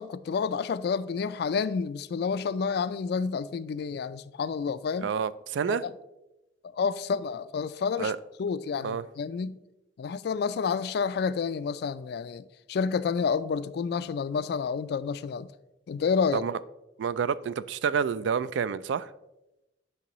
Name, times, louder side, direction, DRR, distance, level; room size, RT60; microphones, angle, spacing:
voice 1, 0.0-5.1 5.7-5.9 6.7-8.1 8.4-9.6 10.0-15.5 15.9-16.4, left 5 dB, 60° left, 0.3 m, -29 dB
voice 2, 5.0-5.8 8.0-8.2 8.8-9.0 16.3-16.6 17.0-19.1, right 6 dB, 85° right, 0.3 m, -28 dB
8.4 x 6.3 x 3.0 m
head